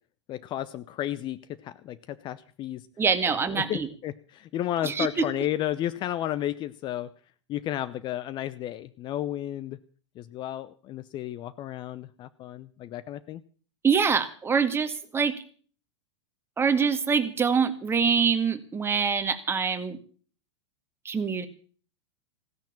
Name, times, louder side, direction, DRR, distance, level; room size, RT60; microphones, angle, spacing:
voice 1, 0.3-2.9 3.4-7.1 7.5-9.8 10.1-13.4, left 12 dB, 30° left, 14 dB, 0.7 m, -33 dB
voice 2, 3.0-3.9 4.8-5.3 13.8-15.4 16.6-20.0 21.1-21.5, right 6 dB, 15° right, 8 dB, 1.9 m, -25 dB
16.5 x 10.5 x 7.3 m, 0.43 s
figure-of-eight pair, 95°, 15 cm